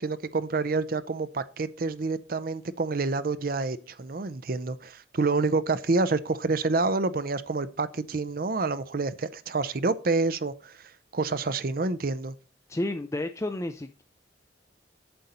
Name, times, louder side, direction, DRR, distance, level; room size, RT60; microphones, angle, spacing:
voice 1, 0.0-10.8 11.1-12.3, right 3 dB, 55° right, 0.6 m, -28 dB
voice 2, 12.7-14.0, left 1 dB, 15° left, 0.5 m, -31 dB
8.1 x 7.8 x 4.2 m
head